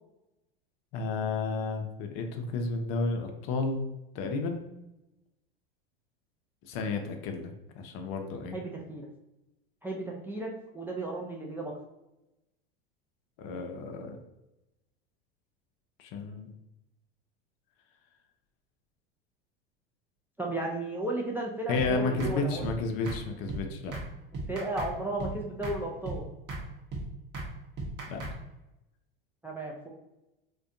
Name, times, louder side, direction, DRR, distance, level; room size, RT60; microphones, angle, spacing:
voice 1, 0.9-3.9 4.1-4.6 6.6-8.6 13.4-14.2 16.0-16.5 21.7-23.9 28.1-28.2, left 3 dB, 50° left, 4 dB, 0.5 m, -32 dB
voice 2, 8.5-9.1 9.8-11.7 20.4-22.7 24.5-26.2 29.4-29.9, right 2 dB, 5° right, -3 dB, 0.4 m, -34 dB
sound 1, 21.8-21.9 22.2-22.3 22.6-22.8 23.0-23.2 23.5-23.6 23.9-24.1 24.3-24.9 25.2-25.3 25.6-25.8 26.0-26.2 26.5-26.6 26.9-27.0 27.3-27.5 27.8-28.3, right 2 dB, 35° right, 0.8 m, -36 dB
2.5 x 2.2 x 2.5 m, 0.94 s
hypercardioid pair, 90°, 29 cm